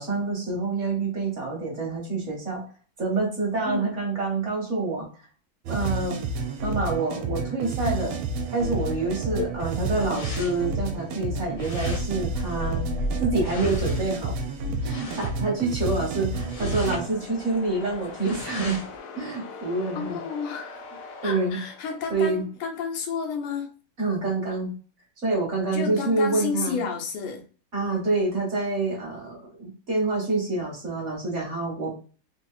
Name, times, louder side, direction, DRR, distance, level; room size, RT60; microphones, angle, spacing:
voice 1, 0.0-2.6 3.0-5.1 5.7-6.2 6.6-8.2 8.5-12.8 13.2-14.3 14.8-18.8 19.1-20.2 21.2-21.6 22.1-22.5 24.0-24.7 25.2-26.8 27.7-31.9, right 3 dB, 40° right, 1.4 m, -27 dB
voice 2, 3.6-4.0 9.3-9.5 19.9-20.8 21.2-23.7 25.7-27.4, left 6 dB, 90° left, 1.7 m, -31 dB
sound 1, 5.7-17.1, right 2 dB, 75° right, 1.4 m, -30 dB
sound 2, 8.8-19.0, left 1 dB, 55° left, 1.0 m, -37 dB
sound 3, 15.5-22.4, left 4 dB, 70° left, 1.0 m, -43 dB
3.8 x 2.8 x 2.4 m
omnidirectional pair, 2.3 m